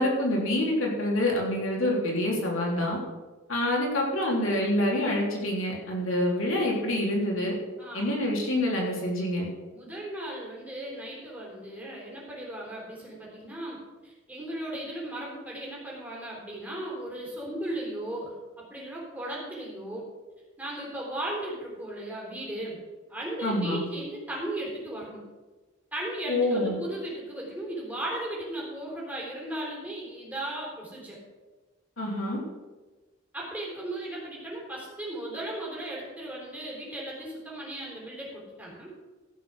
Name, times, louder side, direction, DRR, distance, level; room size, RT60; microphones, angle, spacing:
voice 1, 0.0-3.0 3.5-7.5 7.9-9.5 23.4-23.8 26.3-26.8 32.0-32.4, left 1 dB, 85° left, -2 dB, 3.4 m, -26 dB
voice 2, 9.7-13.8 14.0-20.1 20.6-22.8 23.1-25.2 25.9-31.2 33.3-38.9, right 1 dB, 10° right, -4 dB, 3.8 m, -36 dB
15.5 x 6.1 x 6.3 m, 1.3 s
head